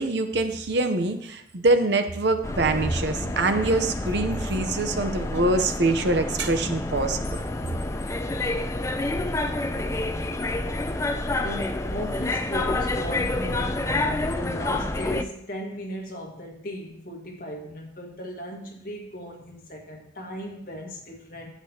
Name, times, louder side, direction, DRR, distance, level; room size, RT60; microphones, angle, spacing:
voice 1, 0.0-7.4, right 2 dB, 60° right, 8 dB, 0.8 m, -24 dB
sound 1, 2.4-15.2, left 2 dB, 15° left, 0.3 m, -28 dB
voice 2, 11.4-21.5, equal, 50° left, 0 dB, 1.7 m, -37 dB
10.5 x 8.3 x 2.9 m, 0.74 s
head